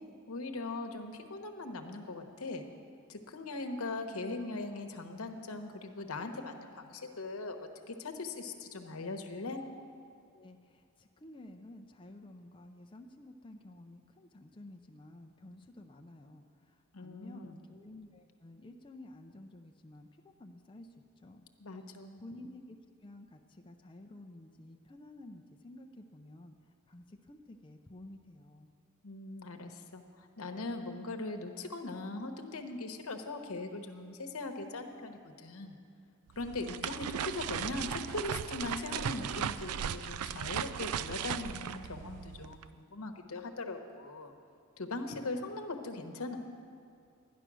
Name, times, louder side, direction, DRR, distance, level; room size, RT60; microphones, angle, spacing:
voice 1, 0.3-2.6 3.1-7.6 7.9-9.6 16.9-17.6 21.6-22.2 29.0-35.8 36.4-44.3 44.8-46.4, left 2 dB, 75° left, 4 dB, 1.0 m, -40 dB
voice 2, 10.3-20.1 20.4-21.5 22.2-26.6 26.9-28.7, left 1 dB, 25° left, 3 dB, 0.5 m, -52 dB
sound 1, 36.3-42.7, right 8 dB, 85° right, 0.4 m, -37 dB
13.0 x 10.5 x 6.1 m, 2.5 s
head